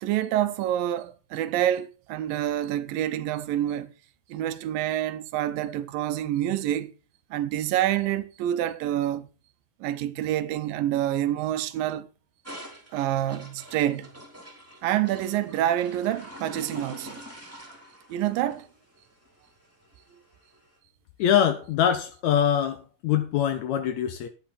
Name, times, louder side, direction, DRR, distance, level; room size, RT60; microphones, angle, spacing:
voice 1, 0.0-3.9 4.3-6.9 7.3-9.3 9.8-12.1 12.9-14.1 14.8-17.2 18.1-18.7, right 12 dB, 85° right, 2.5 m, -27 dB
sound 1, 12.4-20.7, equal, 5° right, 3.1 m, -46 dB
voice 2, 21.2-24.3, left 9 dB, 75° left, 1.7 m, -24 dB
10.5 x 9.8 x 4.2 m
omnidirectional pair, 3.9 m